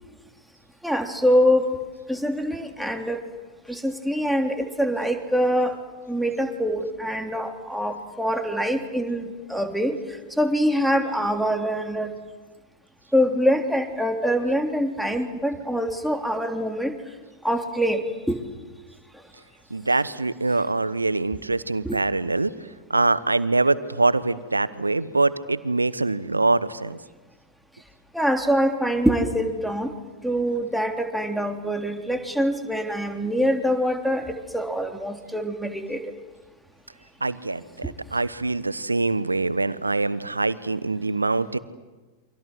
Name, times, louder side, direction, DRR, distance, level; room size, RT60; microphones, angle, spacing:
voice 1, 0.8-1.7 2.1-3.2 3.7-5.7 6.1-10.0 10.4-12.1 13.1-16.9 17.4-18.4 21.8-22.0 28.1-29.9 30.2-36.0 37.8-37.9, equal, ahead, 4 dB, 3.3 m, -24 dB
voice 2, 19.7-22.5 22.9-27.0 37.2-41.6, right 3 dB, 80° right, 18 dB, 1.1 m, -24 dB
29.0 x 25.5 x 8.0 m, 1.3 s
figure-of-eight pair, 90°, 0 cm